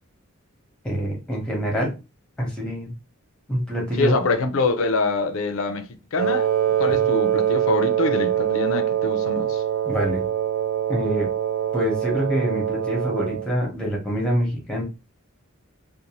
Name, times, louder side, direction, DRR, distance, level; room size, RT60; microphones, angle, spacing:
voice 1, 0.8-1.9 2.4-2.9 3.5-4.1 6.9-7.1 9.8-10.2 10.9-11.3 11.7-14.8, equal, 5° left, 0.9 m, -25 dB
voice 2, 4.0-5.9 6.1-6.5 6.8-9.6, left 3 dB, 75° left, 0.5 m, -24 dB
Wind instrument woodwind instrument, 6.2-13.5, right 10 dB, 85° right, 0.4 m, -23 dB
2.6 x 2.1 x 2.9 m
head